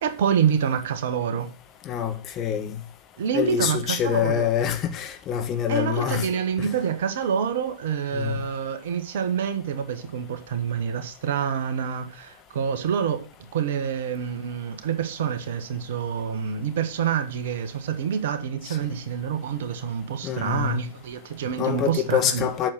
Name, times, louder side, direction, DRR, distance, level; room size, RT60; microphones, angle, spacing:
voice 1, 0.0-1.5 3.2-4.5 5.7-13.2 13.5-22.5, right 8 dB, 55° right, 1.5 m, -27 dB
voice 2, 1.8-2.8 3.3-6.3 6.6-6.7 8.1-8.4 18.7-18.8 20.2-20.8 21.6-22.7, left 9 dB, 30° left, 1.6 m, -25 dB
8.4 x 6.7 x 6.5 m
figure-of-eight pair, 95°, 0 cm